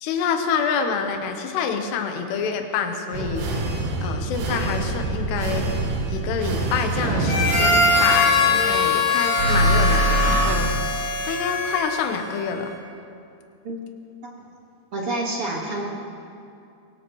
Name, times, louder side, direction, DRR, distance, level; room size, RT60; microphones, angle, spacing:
voice 1, 0.0-3.5 4.0-5.7 6.1-10.7 11.2-12.7, left 6 dB, 75° left, 5 dB, 3.1 m, -27 dB
sound 1, 3.1-8.9 9.4-10.6, right 2 dB, 75° right, 3.5 m, -24 dB
Harmonica, 7.2-12.3, left 3 dB, 55° left, 3.7 m, -22 dB
voice 2, 14.9-15.8, right 2 dB, 55° right, -2 dB, 1.6 m, -28 dB
23.0 x 19.0 x 3.1 m, 2.5 s
omnidirectional pair, 5.0 m